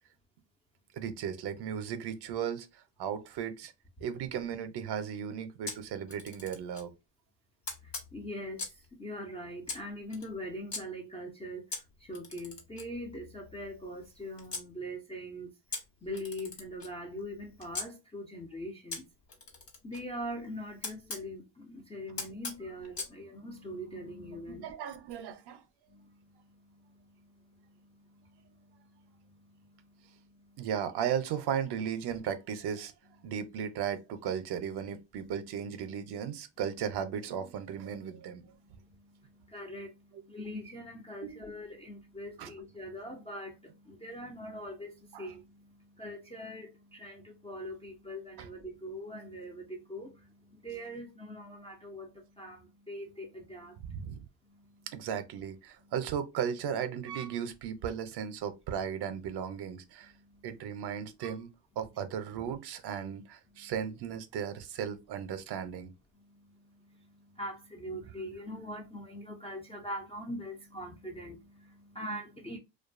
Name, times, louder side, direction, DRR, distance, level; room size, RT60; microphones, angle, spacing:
voice 1, 0.9-3.7 4.0-6.9 24.6-25.6 30.6-32.9 33.2-38.5 40.1-40.2 41.2-41.4 42.4-42.5 45.1-45.3 48.4-48.5 53.8-54.2 54.9-60.1 60.4-65.9, right 8 dB, 55° right, 0.6 m, -36 dB
Camera, 5.7-6.9 7.6-8.9 9.6-10.8 11.7-14.7 15.7-17.9 18.9-21.3 22.2-23.1, left 4 dB, 55° left, 1.2 m, -42 dB
voice 2, 8.1-8.6 9.0-11.6 12.0-15.5 16.0-19.0 19.8-24.6 39.5-39.9 40.3-45.4 46.0-50.1 50.5-53.8 67.4-72.6, equal, 15° left, 0.3 m, -42 dB
2.5 x 2.3 x 2.4 m
cardioid pair, 115°, 48 cm